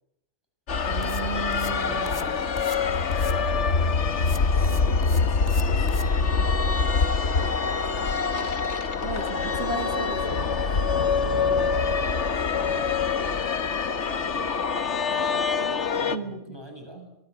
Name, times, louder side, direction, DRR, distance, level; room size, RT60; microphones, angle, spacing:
sound 1, 0.7-16.2, left 5 dB, 70° left, 1.6 m, -25 dB
sound 2, 0.8-6.1, left 2 dB, 20° left, 1.3 m, -42 dB
voice 1, 0.9-2.2 9.0-10.4 11.3-12.0 16.1-16.6 17.0-17.1, right 4 dB, 60° right, 9 dB, 2.2 m, -35 dB
voice 2, 1.6-8.6 9.9-12.0 12.3-17.0, equal, 20° right, 5 dB, 7.7 m, -46 dB
24.5 x 24.5 x 9.4 m, 0.81 s
omnidirectional pair, 1.2 m